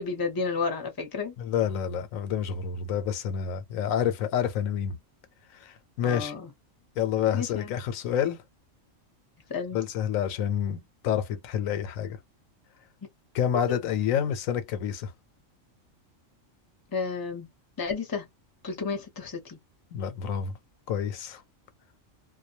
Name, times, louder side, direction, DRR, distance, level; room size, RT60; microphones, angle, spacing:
voice 1, 0.0-1.4 6.0-6.5 7.3-7.7 9.5-9.8 16.9-17.5 17.8-18.3 18.6-19.6, left 5 dB, 20° left, 0.6 m, -31 dB
voice 2, 1.4-5.0 5.5-6.3 7.0-8.4 9.7-12.2 13.3-15.1 19.9-20.5 20.9-21.4, left 9 dB, 90° left, 1.0 m, -28 dB
2.3 x 2.2 x 2.7 m
omnidirectional pair, 1.4 m